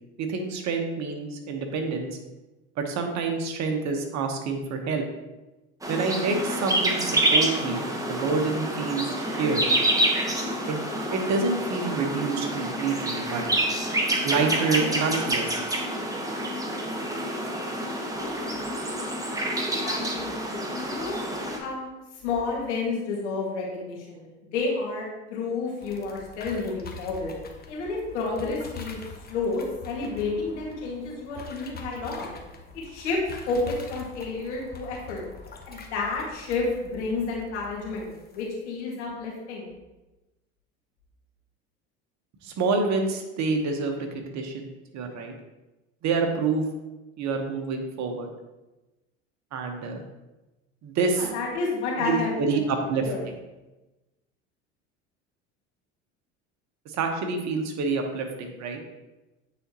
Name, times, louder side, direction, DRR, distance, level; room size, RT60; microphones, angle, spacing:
voice 1, 0.2-2.1 2.8-5.0 5.9-9.6 10.7-10.8 11.1-13.4 14.2-15.8 42.4-44.7 44.9-45.3 46.0-46.6 47.2-48.3 49.5-50.0 50.8-51.3 52.0-53.3 56.9-58.8, right 4 dB, 50° right, 4 dB, 1.2 m, -27 dB
sound 1, 5.8-21.6, right 1 dB, 10° right, 1.2 m, -27 dB
voice 2, 19.8-21.1 21.6-21.9 22.2-24.3 24.5-27.3 27.7-29.0 29.3-32.3 32.8-33.2 33.5-35.3 35.7-39.7 51.2-52.6 53.0-53.2, left 3 dB, 80° left, -3 dB, 2.1 m, -30 dB
sound 2, 25.8-38.5, left 4 dB, 25° left, 1.0 m, -44 dB
9.0 x 4.1 x 3.0 m, 1.1 s
hypercardioid pair, 75°, 35 cm